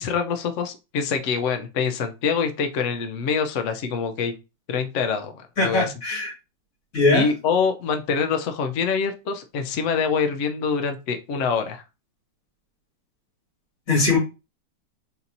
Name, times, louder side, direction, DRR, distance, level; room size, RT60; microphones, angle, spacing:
voice 1, 0.0-4.3 4.7-5.9 7.1-11.8, left 5 dB, 80° left, 7 dB, 0.6 m, -25 dB
voice 2, 5.6-6.3 6.9-7.3 13.9-14.2, left 3 dB, 45° left, -3 dB, 2.6 m, -20 dB
4.3 x 4.1 x 2.6 m, 0.28 s
omnidirectional pair, 2.1 m